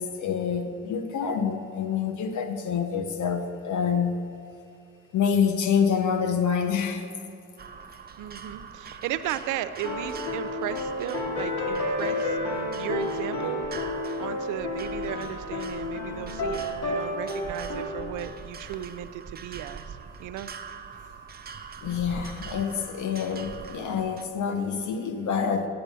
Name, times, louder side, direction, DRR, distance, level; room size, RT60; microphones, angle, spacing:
voice 1, 0.0-4.2 5.1-7.0 21.8-25.7, left 7 dB, 75° left, 7 dB, 1.1 m, -27 dB
sound 1, 7.6-24.3, right 6 dB, 30° right, 0.6 m, -43 dB
voice 2, 8.2-13.7 14.2-20.5, right 11 dB, 85° right, 12 dB, 0.6 m, -35 dB
sound 2, 9.8-17.9, left 2 dB, 60° left, 2.5 m, -31 dB
8.8 x 8.7 x 6.8 m, 2.6 s
cardioid pair, 90°, 30 cm